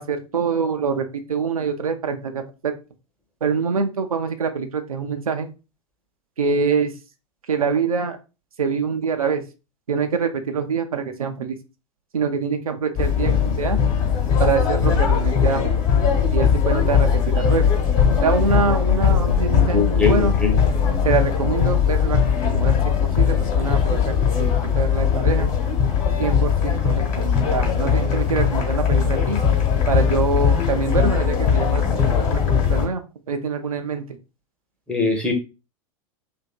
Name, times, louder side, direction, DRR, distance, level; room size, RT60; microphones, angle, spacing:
voice 1, 0.0-2.7 3.4-5.5 6.4-6.9 7.5-8.2 8.6-9.4 9.9-11.5 12.1-13.8 14.4-15.7 16.3-17.7 18.2-20.3 21.0-22.2 22.5-25.5 26.2-29.4 29.9-34.0, right 5 dB, 80° right, 6 dB, 0.4 m, -25 dB
sound 1, 12.9-32.9, left 7 dB, 40° left, 1.0 m, -20 dB
sound 2, 14.1-22.6, left 7 dB, 70° left, 0.6 m, -27 dB
voice 2, 19.7-20.6 34.9-35.3, left 4 dB, 5° left, 2 dB, 0.6 m, -21 dB
2.8 x 2.6 x 2.2 m, 0.30 s
figure-of-eight pair, 90°, 18 cm